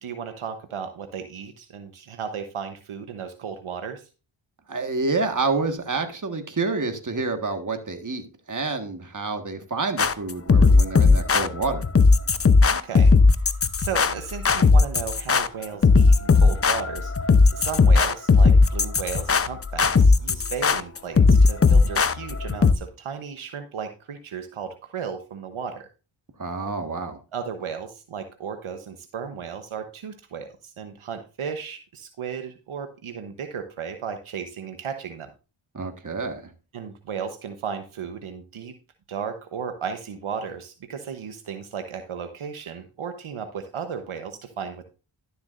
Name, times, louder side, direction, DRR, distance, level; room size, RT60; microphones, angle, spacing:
voice 1, 0.0-4.0 12.7-13.1 13.8-17.1 17.5-25.9 27.3-35.3 36.7-38.7 39.1-44.8, right 7 dB, 75° right, 7 dB, 1.1 m, -35 dB
voice 2, 4.7-11.9 26.4-27.2 35.7-36.5, right 3 dB, 35° right, 6 dB, 1.6 m, -28 dB
sound 1, 10.0-22.7, left 4 dB, 30° left, 0.6 m, -17 dB
12.0 x 7.0 x 2.5 m, 0.33 s
cardioid pair, 40°, 50 cm